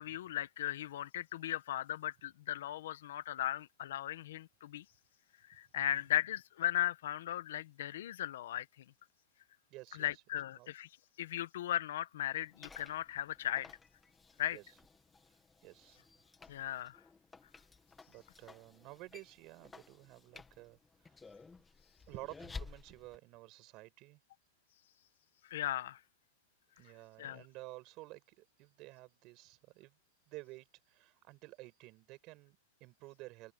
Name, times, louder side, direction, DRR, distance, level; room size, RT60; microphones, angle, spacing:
voice 1, 0.0-4.8 5.5-8.8 10.0-10.9 11.2-13.7 14.4-14.6 16.5-17.0 25.4-26.0 27.2-27.4, left 12 dB, 70° left, 1.4 m, -37 dB
voice 2, 9.7-10.2 10.5-10.7 14.5-14.7 15.6-16.0 18.1-21.3 22.1-24.2 26.8-30.0 30.3-33.5, right 21 dB, 30° right, 5.4 m, -52 dB
sound 1, 12.4-23.2, left 4 dB, 10° left, 2.1 m, -54 dB
open air
supercardioid pair, 170°, 0 cm